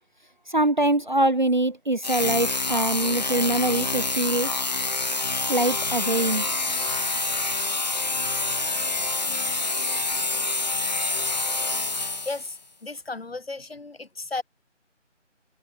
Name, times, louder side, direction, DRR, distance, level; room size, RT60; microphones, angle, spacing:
voice 1, 0.5-4.5 5.5-6.4, right 1 dB, 40° right, 0.7 m, -23 dB
sound 1, 2.0-12.6, left 3 dB, 35° left, 1.1 m, -27 dB
sound 2, 6.7-7.7, right 3 dB, 5° right, 1.3 m, -49 dB
voice 2, 12.2-14.4, left 3 dB, 55° left, 5.6 m, -34 dB
figure-of-eight pair, 170°, 37 cm